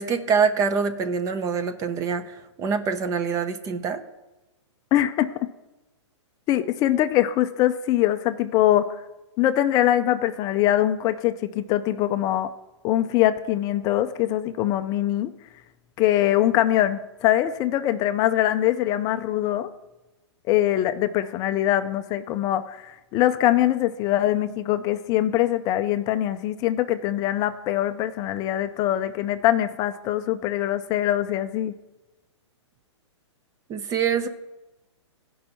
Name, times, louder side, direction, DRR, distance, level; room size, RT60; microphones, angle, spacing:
voice 1, 0.0-4.0 33.7-34.3, right 6 dB, 20° right, 9 dB, 0.6 m, -25 dB
voice 2, 4.9-5.5 6.5-9.0 9.4-12.5 12.8-15.3 16.0-19.7 20.5-31.7, left 13 dB, 25° left, 10 dB, 0.4 m, -23 dB
15.0 x 5.4 x 4.4 m, 1.0 s
hypercardioid pair, 135°, 15 cm